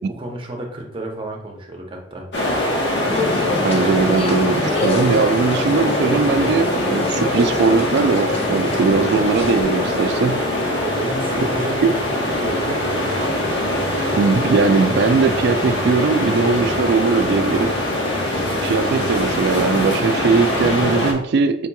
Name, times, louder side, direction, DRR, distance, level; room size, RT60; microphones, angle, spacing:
voice 1, 0.0-2.3 10.8-13.2, right 1 dB, 30° right, 1 dB, 0.7 m, -31 dB
sound 1, 2.3-21.1, left 1 dB, 70° left, 0.9 m, -22 dB
sound 2, 3.1-10.2, left 2 dB, 35° left, 0.5 m, -27 dB
voice 2, 3.6-10.4 11.8-11.9 14.2-17.7 18.6-21.7, right 4 dB, 65° right, 10 dB, 0.3 m, -19 dB
sound 3, 5.7-19.3, equal, 5° left, 0.8 m, -36 dB
4.4 x 2.9 x 2.2 m, 0.76 s
head